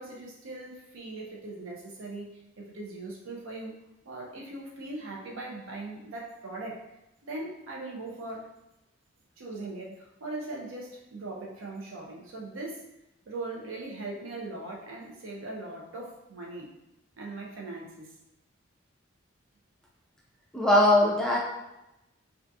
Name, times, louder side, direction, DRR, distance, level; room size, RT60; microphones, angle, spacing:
voice 1, 0.0-3.8 4.0-6.9 7.2-8.5 9.4-12.8 13.3-16.7 17.2-18.2, right 2 dB, 85° right, -1 dB, 0.6 m, -40 dB
voice 2, 20.5-21.4, left 1 dB, 5° left, -4 dB, 0.3 m, -20 dB
2.4 x 2.3 x 2.6 m, 0.91 s
head